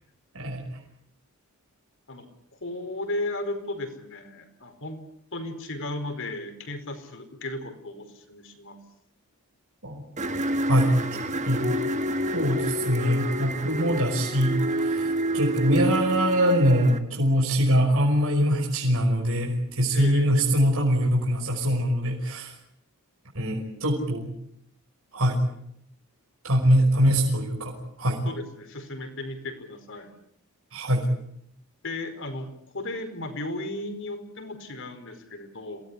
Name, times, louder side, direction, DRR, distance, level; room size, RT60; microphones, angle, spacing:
voice 1, 2.6-5.0 5.3-8.8 19.9-20.3 28.2-30.1 31.8-35.8, left 2 dB, 60° left, 7 dB, 4.8 m, -35 dB
sound 1, 10.2-17.0, right 1 dB, 30° right, 1.6 m, -28 dB
voice 2, 12.3-22.5 23.3-24.3 25.1-25.4 26.4-28.2 30.7-31.1, equal, 65° right, -1 dB, 5.6 m, -23 dB
27.5 x 18.5 x 10.0 m, 0.73 s
head